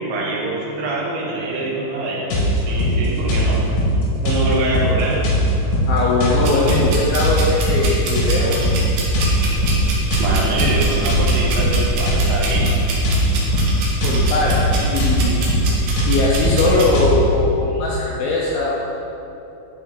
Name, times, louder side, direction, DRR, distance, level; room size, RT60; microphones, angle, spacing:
voice 1, 0.0-3.6 4.2-5.3 10.2-12.7, right 2 dB, 80° right, -4 dB, 3.4 m, -24 dB
sound 1, 2.3-17.2, equal, 65° left, 2.3 m, -20 dB
voice 2, 5.9-8.6 14.0-15.4 16.1-18.7, left 3 dB, 80° left, -4 dB, 2.2 m, -20 dB
sound 2, 6.4-16.9, right 3 dB, 65° right, 2.1 m, -26 dB
11.0 x 4.7 x 3.7 m, 2.9 s
omnidirectional pair, 5.1 m